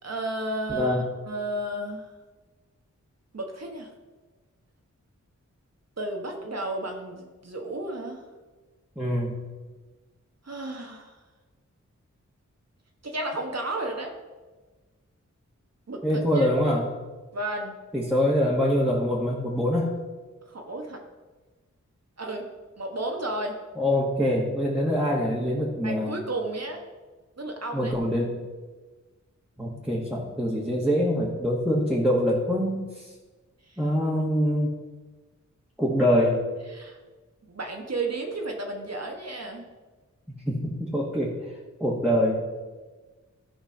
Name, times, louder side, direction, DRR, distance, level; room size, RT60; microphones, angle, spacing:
voice 1, 0.0-2.1 3.3-3.9 6.0-8.2 10.4-11.2 13.0-14.1 15.9-16.5 17.3-17.7 20.5-21.0 22.2-22.5 22.8-23.6 25.8-26.8 27.4-27.9 33.7-33.8 36.7-37.0 37.5-39.7, right 2 dB, 55° right, 2 dB, 1.4 m, -32 dB
voice 2, 0.7-1.0 9.0-9.4 16.0-16.9 17.9-19.9 23.8-26.2 27.7-28.4 29.6-33.1 33.8-34.7 35.8-36.4 40.5-41.3 41.8-42.4, equal, 5° right, -5 dB, 1.9 m, -24 dB
12.5 x 4.6 x 5.8 m, 1.3 s
cardioid pair, 50°, 30 cm